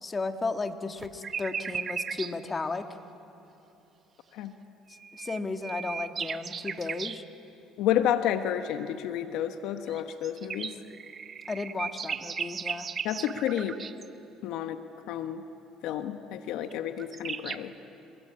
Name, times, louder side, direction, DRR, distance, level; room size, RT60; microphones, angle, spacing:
voice 1, 0.0-2.9 5.1-7.2 11.5-12.9, left 3 dB, 25° left, 6 dB, 1.8 m, -34 dB
sound 1, 1.0-2.3 4.9-7.2 9.9-14.1 16.7-16.8 17.0-17.6, right 6 dB, 40° right, 1.0 m, -36 dB
voice 2, 7.8-10.7 13.0-13.8 14.4-14.8 15.1-15.4 15.8-17.7, left 10 dB, 75° left, 8 dB, 1.1 m, -30 dB
28.5 x 21.5 x 8.7 m, 2.8 s
supercardioid pair, 80°, 0 cm